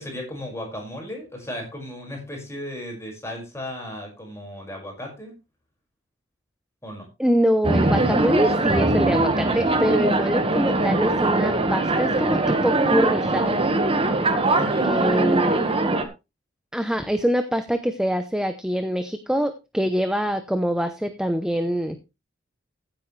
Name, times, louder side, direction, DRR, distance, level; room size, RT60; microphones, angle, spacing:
voice 1, 0.0-5.3 6.8-7.1 14.5-14.9, left 1 dB, 15° left, 1 dB, 5.6 m, -35 dB
voice 2, 7.2-13.6 14.8-15.7 16.7-22.0, equal, 5° right, 9 dB, 0.8 m, -24 dB
sound 1, 7.6-16.1, right 2 dB, 30° right, 1.5 m, -21 dB
15.0 x 8.8 x 3.3 m, 0.27 s
head